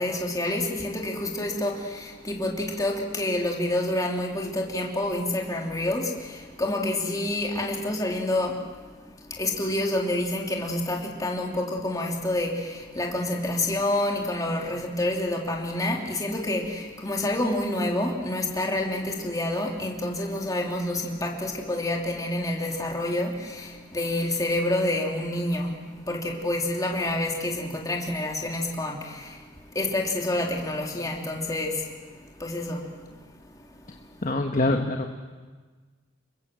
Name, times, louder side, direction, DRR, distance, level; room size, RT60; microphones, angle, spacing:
voice 1, 0.0-8.6 9.4-25.7 26.1-29.4 29.7-31.8 32.4-32.9, left 1 dB, 20° left, 0 dB, 3.1 m, -28 dB
voice 2, 34.2-35.2, left 2 dB, 40° left, 4 dB, 1.3 m, -25 dB
27.5 x 22.5 x 7.6 m, 1.4 s
head